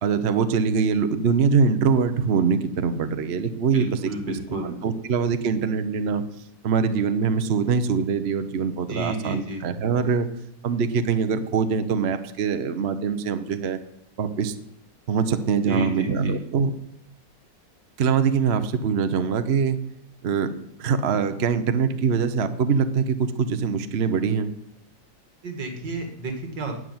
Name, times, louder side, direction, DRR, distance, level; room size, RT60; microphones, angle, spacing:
voice 1, 0.0-4.0 4.8-6.2 6.6-10.3 10.6-13.8 14.2-14.5 15.1-16.7 18.0-19.8 20.2-20.5 20.8-24.5, right 6 dB, 50° right, 9 dB, 0.9 m, -23 dB
voice 2, 3.7-4.8 8.9-9.6 15.7-16.4 25.4-26.7, right 2 dB, 75° right, 4 dB, 2.5 m, -31 dB
11.0 x 7.7 x 9.4 m, 0.78 s
omnidirectional pair, 2.0 m